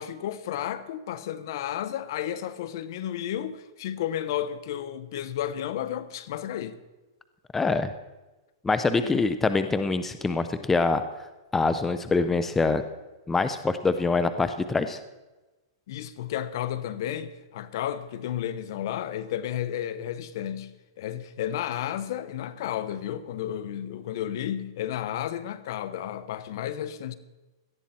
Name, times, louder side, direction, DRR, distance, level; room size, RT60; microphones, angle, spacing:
voice 1, 0.0-6.8 8.9-9.3 15.9-27.2, left 11 dB, 60° left, 1.2 m, -32 dB
voice 2, 7.5-7.9 8.6-11.0 11.5-12.8 13.3-15.0, left 3 dB, 10° left, 0.7 m, -24 dB
18.0 x 13.0 x 4.4 m
hypercardioid pair, 130°, 2 cm